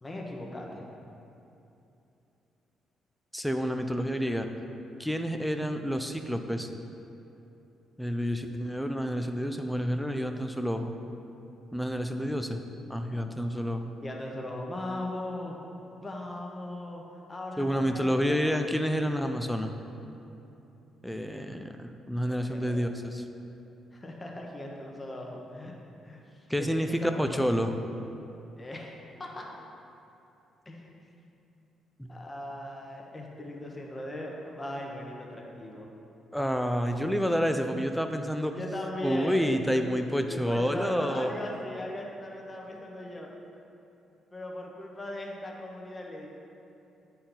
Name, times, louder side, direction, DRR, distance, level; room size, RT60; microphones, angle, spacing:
voice 1, 0.0-0.9 13.0-13.2 14.0-15.6 16.0-17.0 17.3-18.6 22.1-22.9 23.9-25.8 26.0-27.5 28.6-28.9 29.2-29.5 30.6-31.0 32.1-35.9 38.6-39.5 40.2-43.3 44.3-46.3, left 1 dB, 25° left, -1 dB, 1.1 m, -39 dB
voice 2, 3.3-4.5 5.0-6.7 8.0-10.9 11.7-12.6 12.9-13.9 17.6-19.7 21.0-23.2 26.5-27.7 32.0-32.2 36.3-38.6 39.0-41.3, equal, 5° left, 6 dB, 0.5 m, -29 dB
9.5 x 4.2 x 3.9 m, 2.8 s
cardioid pair, 90°, 0 cm